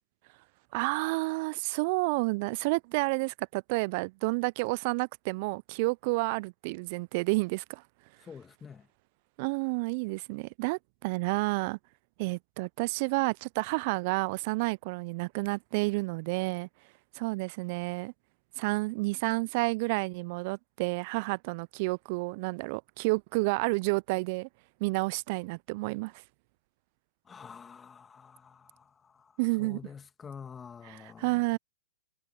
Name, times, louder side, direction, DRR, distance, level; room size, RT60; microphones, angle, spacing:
voice 1, 0.7-7.8 9.4-11.8 12.2-16.7 17.1-18.1 18.6-24.5 24.8-26.1 29.4-29.8 30.9-31.6, right 26 dB, 40° right, 0.3 m, -30 dB
voice 2, 8.2-8.9 27.3-31.4, left 6 dB, 15° left, 2.1 m, -48 dB
hypercardioid pair, 135°, 0 cm